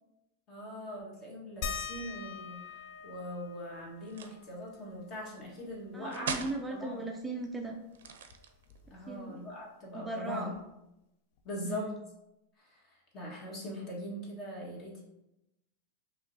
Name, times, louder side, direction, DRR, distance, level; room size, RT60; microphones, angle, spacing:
voice 1, 0.5-6.3 6.7-7.0 8.9-10.5 11.4-12.0 12.6-15.0, equal, 35° left, -3 dB, 1.5 m, -41 dB
sound 1, 1.6-6.7 7.1-7.2 7.5-9.3 10.5-10.6 11.4-11.5, left 6 dB, 60° left, 0.4 m, -45 dB
sound 2, 4.0-4.5 6.1-6.6 7.9-8.8, right 6 dB, 85° right, 0.4 m, -39 dB
voice 2, 5.9-7.8 9.1-9.4 9.9-10.5 11.6-11.9, right 2 dB, 10° right, 1 dB, 0.4 m, -38 dB
5.0 x 3.0 x 2.7 m, 0.90 s
supercardioid pair, 135°, 0 cm